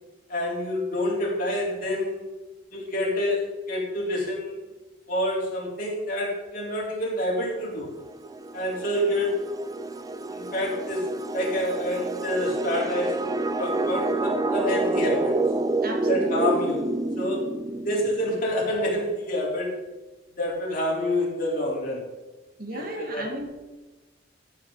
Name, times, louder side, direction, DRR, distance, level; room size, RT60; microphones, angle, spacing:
voice 1, 0.3-2.2 2.7-4.6 5.1-7.9 8.5-9.4 9.9-10.0 10.3-15.4 16.1-16.9 17.2-17.5 17.8-19.8 20.4-22.1 22.7-23.3, left 1 dB, 45° left, -4 dB, 3.9 m, -27 dB
sound 1, 7.9-18.4, right 2 dB, 20° right, 0.4 m, -28 dB
voice 2, 15.8-16.3 22.6-23.6, right 1 dB, 50° right, 3 dB, 1.8 m, -35 dB
14.5 x 7.9 x 4.0 m, 1.2 s
head